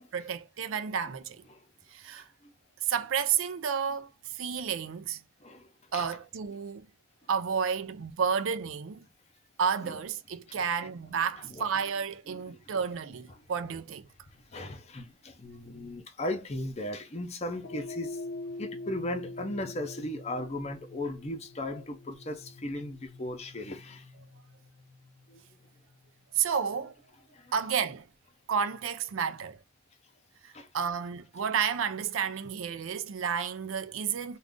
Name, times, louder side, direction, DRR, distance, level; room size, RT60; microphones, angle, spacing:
voice 1, 0.1-1.4 1.9-2.3 2.8-5.2 5.9-6.9 7.3-9.0 9.6-14.0 26.3-26.9 27.5-28.1 28.5-29.6 30.4-34.4, right 7 dB, 80° right, 0.4 m, -31 dB
voice 2, 2.1-2.5 5.4-6.1 9.8-10.0 10.5-10.9 11.4-11.7 12.3-12.7 13.3-13.4 14.5-18.2 18.6-24.1 25.3-25.4 27.3-27.5 30.5-30.7, left 1 dB, 30° left, 0.6 m, -37 dB
sound 1, 17.6-26.1, left 2 dB, 70° left, 0.7 m, -44 dB
2.5 x 2.3 x 3.5 m
head